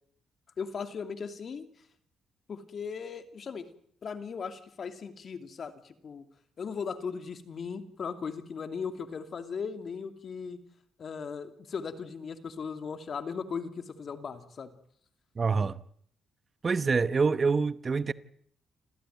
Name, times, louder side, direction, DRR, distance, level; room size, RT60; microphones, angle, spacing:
voice 1, 0.6-1.7 2.5-3.7 4.0-6.2 6.6-10.6 11.0-14.7, left 6 dB, 50° left, 2.7 m, -37 dB
voice 2, 15.4-15.8 16.6-18.1, right 4 dB, 35° right, 1.0 m, -26 dB
27.5 x 15.0 x 9.3 m
cardioid pair, 90°, 0 cm